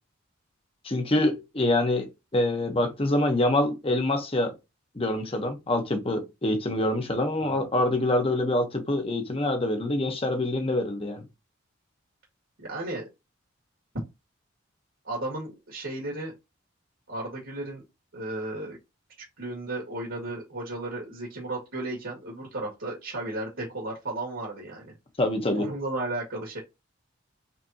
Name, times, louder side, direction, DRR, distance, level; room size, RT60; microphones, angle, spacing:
voice 1, 0.8-2.1 2.3-4.5 4.9-11.2 25.2-25.7, left 1 dB, 25° left, 1.0 m, -25 dB
voice 2, 12.7-13.0 15.0-16.3 17.1-17.8 18.1-18.8 19.4-24.9 25.5-26.6, right 2 dB, 65° right, 1.8 m, -34 dB
5.5 x 3.4 x 2.8 m
head